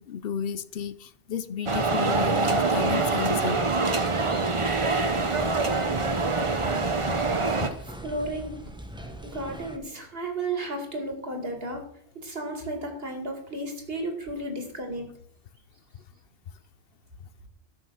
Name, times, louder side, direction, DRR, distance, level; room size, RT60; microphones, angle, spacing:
voice 1, 0.0-3.6, left 7 dB, 70° left, 0.9 m, -32 dB
sound 1, 1.7-7.7, right 3 dB, 30° right, 0.9 m, -25 dB
sound 2, 4.6-9.8, equal, 5° right, 1.1 m, -42 dB
voice 2, 7.8-8.6 9.3-11.8 12.1-15.1, right 2 dB, 70° right, 2.6 m, -33 dB
13.0 x 6.7 x 6.2 m
omnidirectional pair, 1.0 m